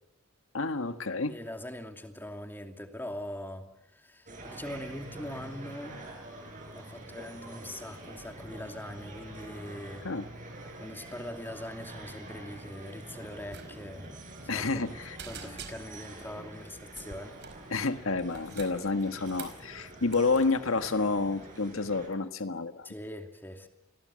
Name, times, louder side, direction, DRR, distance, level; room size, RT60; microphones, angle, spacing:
voice 1, 0.5-1.3 10.0-10.2 14.5-15.2 17.7-22.9, left 3 dB, 70° left, 9 dB, 1.6 m, -29 dB
voice 2, 1.2-6.0 6.8-10.1 10.8-14.7 15.2-17.4 22.8-23.7, left 1 dB, 10° left, 5 dB, 2.7 m, -42 dB
sound 1, 4.2-22.1, right 1 dB, 40° right, 7.9 m, -46 dB
sound 2, 13.5-13.7 13.9-14.1 14.5-14.9 15.2-16.1 16.9-17.6 18.2-19.6 20.1-20.4, right 6 dB, 55° right, 4.8 m, -46 dB
29.5 x 21.5 x 7.6 m, 0.81 s
head